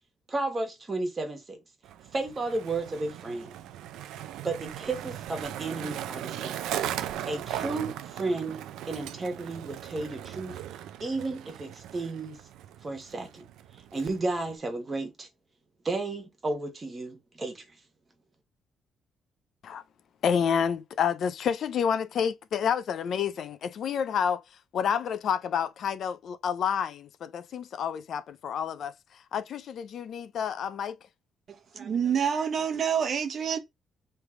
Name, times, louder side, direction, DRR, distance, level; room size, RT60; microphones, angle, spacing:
voice 1, 0.3-1.6 2.1-3.5 4.4-6.7 7.2-10.6 11.0-12.4 12.8-13.4 13.9-15.3 15.8-17.6, right 2 dB, 30° right, 1.5 m, -33 dB
Skateboard, 1.8-14.6, right 11 dB, 85° right, 0.4 m, -38 dB
voice 2, 20.2-24.4 24.7-28.9 29.3-31.0, left 7 dB, 65° left, 0.5 m, -29 dB
voice 3, 31.7-33.6, right 7 dB, 55° right, 0.8 m, -27 dB
3.3 x 3.0 x 4.7 m
cardioid pair, 90°, 0 cm